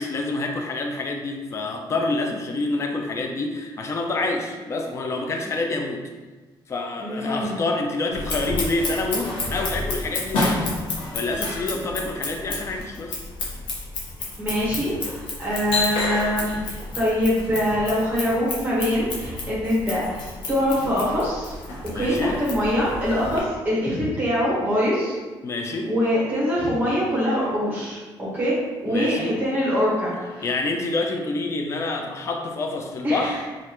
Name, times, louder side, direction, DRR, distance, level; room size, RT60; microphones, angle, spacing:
voice 1, 0.0-6.1 6.7-10.7 11.1-13.2 21.8-22.4 25.4-25.9 28.8-29.4 30.4-33.4, left 2 dB, 30° left, 3 dB, 0.4 m, -27 dB
voice 2, 7.0-7.6 14.4-21.5 21.9-25.2 25.9-28.5 28.8-30.5 33.0-33.3, equal, 20° right, -8 dB, 1.1 m, -24 dB
Scissors, 8.1-23.4, left 2 dB, 90° left, 1.1 m, -30 dB
5.2 x 2.4 x 2.9 m, 1.3 s
cardioid pair, 125°, 9 cm